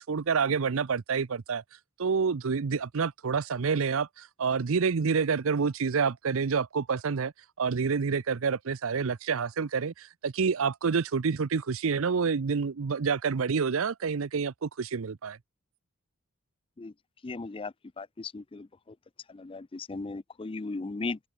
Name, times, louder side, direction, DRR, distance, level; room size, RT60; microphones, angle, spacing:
voice 1, 0.0-1.6 2.0-7.3 7.6-15.4, right 5 dB, 65° right, 0.6 m, -28 dB
voice 2, 17.2-18.7 19.3-21.2, left 3 dB, 25° left, 0.4 m, -37 dB
open air
head